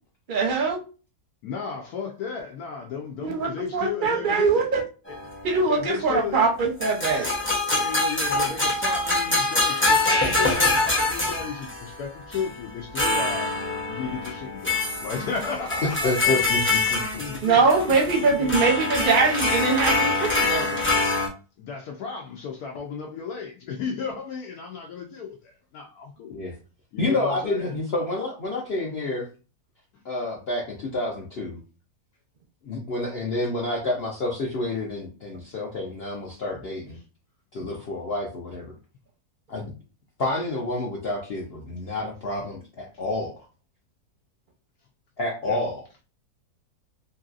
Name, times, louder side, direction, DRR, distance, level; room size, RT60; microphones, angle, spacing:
voice 1, 0.3-0.8 3.2-4.8 5.4-7.3 17.4-20.9, right 4 dB, 45° right, 0.7 m, -22 dB
voice 2, 1.4-4.5 5.7-6.4 7.7-13.5 13.9-16.6 17.2-18.6 21.6-26.4 26.9-27.7 45.4-45.6, left 6 dB, 75° left, 1.1 m, -34 dB
sound 1, 5.1-6.0 6.8-11.9 12.3-12.5 12.9-21.3, left 2 dB, 20° left, 0.3 m, -25 dB
voice 3, 15.8-17.0 17.3-17.4 26.3-26.5 27.0-29.3 30.0-31.6 32.6-37.0 37.5-38.7 39.5-39.7 40.2-43.3 45.2-45.8, left 2 dB, 60° left, 0.7 m, -29 dB
3.0 x 2.7 x 2.4 m
omnidirectional pair, 1.7 m